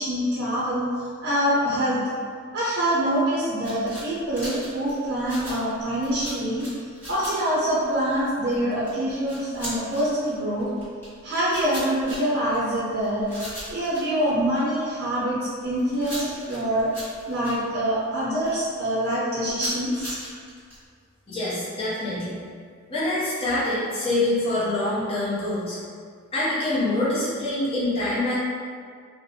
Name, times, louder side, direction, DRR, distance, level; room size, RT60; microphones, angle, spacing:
voice 1, 0.0-2.0 2.5-6.7 7.1-10.7 11.2-13.3 13.7-16.9 17.3-20.2, equal, 50° right, -8 dB, 0.5 m, -25 dB
sound 1, 3.6-14.9 15.4-18.8 19.0-20.8, equal, 10° left, 1.2 m, -39 dB
voice 2, 21.3-22.4 22.9-25.8 26.3-28.3, left 1 dB, 25° left, -10 dB, 0.7 m, -25 dB
2.5 x 2.1 x 2.7 m, 2.1 s
head